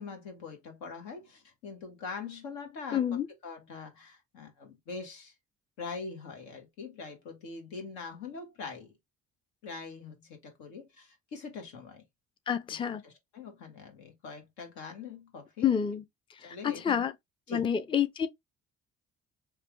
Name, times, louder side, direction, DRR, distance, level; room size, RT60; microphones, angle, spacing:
voice 1, 0.0-5.3 5.8-8.9 9.6-12.0 13.0-15.7 16.4-17.1 17.5-17.7, left 4 dB, 85° left, 1.2 m, -43 dB
voice 2, 2.9-3.3 12.5-13.0 15.6-16.0 16.4-17.1 17.5-18.3, left 8 dB, 20° left, 0.4 m, -28 dB
3.2 x 2.3 x 3.0 m
supercardioid pair, 65°, 29 cm